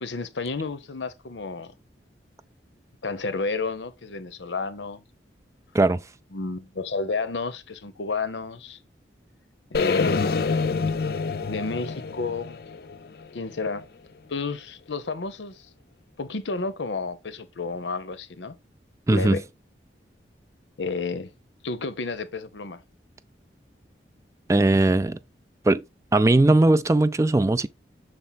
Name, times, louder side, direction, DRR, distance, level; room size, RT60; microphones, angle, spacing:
voice 1, 0.0-1.7 3.0-5.0 6.3-8.8 9.7-10.3 11.4-12.6 13.3-13.9 14.3-15.7 16.2-18.6 19.1-19.4 20.8-21.3 21.6-22.8, left 4 dB, 80° left, 0.8 m, -31 dB
sound 1, 9.7-13.8, left 4 dB, 55° left, 0.5 m, -27 dB
voice 2, 19.1-19.4 24.5-25.2 25.6-25.8 26.1-27.7, right 2 dB, 15° right, 0.3 m, -19 dB
6.5 x 4.4 x 4.0 m
head